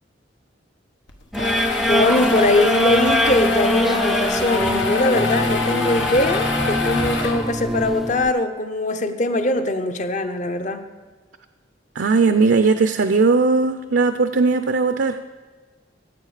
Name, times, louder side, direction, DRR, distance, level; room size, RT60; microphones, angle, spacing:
sound 1, 1.1-7.8, left 4 dB, 90° left, 1.3 m, -26 dB
sound 2, 1.3-8.3, equal, ahead, 0.3 m, -23 dB
voice 1, 1.9-10.9, left 2 dB, 40° left, 8 dB, 0.8 m, -21 dB
voice 2, 12.0-15.2, right 4 dB, 70° right, 8 dB, 0.5 m, -18 dB
15.5 x 7.8 x 4.9 m, 1.4 s
head